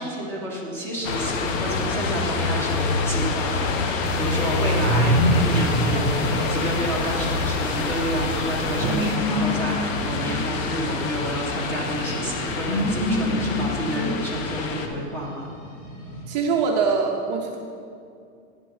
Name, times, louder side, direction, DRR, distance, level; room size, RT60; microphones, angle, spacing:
voice 1, 0.0-15.5, right 1 dB, 5° left, -4 dB, 1.1 m, -30 dB
sound 1, 1.0-14.9, left 4 dB, 75° left, 1.1 m, -26 dB
sound 2, 4.0-9.2, right 8 dB, 65° right, 0.8 m, -36 dB
sound 3, 4.8-16.2, equal, 35° left, 1.8 m, -28 dB
voice 2, 16.3-17.6, right 5 dB, 35° right, 1 dB, 0.6 m, -23 dB
9.7 x 6.1 x 5.5 m, 2.5 s
supercardioid pair, 170°, 39 cm